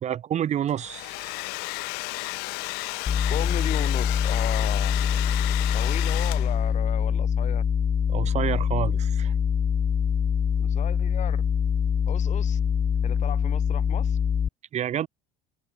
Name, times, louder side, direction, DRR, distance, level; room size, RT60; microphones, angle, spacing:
voice 1, 0.0-1.4 8.1-9.3 14.7-15.1, right 10 dB, 40° right, 1.8 m, -29 dB
Domestic sounds home sounds, 0.7-6.7, left 27 dB, 70° left, 3.7 m, -33 dB
sound 1, 3.1-14.5, left 7 dB, 20° left, 0.4 m, -24 dB
voice 2, 3.2-4.9 5.7-7.6 10.6-11.4 12.1-12.6 13.0-14.2, left 11 dB, 45° left, 1.4 m, -35 dB
open air
supercardioid pair, 95°, 17 cm